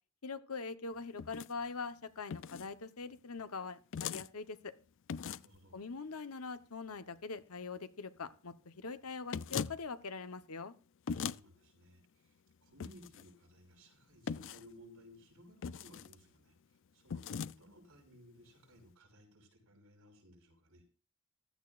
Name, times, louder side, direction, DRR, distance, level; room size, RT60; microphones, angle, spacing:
voice 1, 0.2-4.7 5.7-10.7, left 4 dB, 75° left, 11 dB, 1.1 m, -43 dB
sound 1, 1.2-1.5 2.3-2.7 3.9-4.3 5.1-5.6 9.3-9.8 11.1-11.4 12.8-13.2 14.3-14.7 15.6-16.2 17.1-17.5, left 6 dB, 60° left, 0.4 m, -39 dB
voice 2, 5.3-5.8 11.1-20.8, equal, 75° right, 2 dB, 5.9 m, -60 dB
15.5 x 13.0 x 2.5 m, 0.37 s
head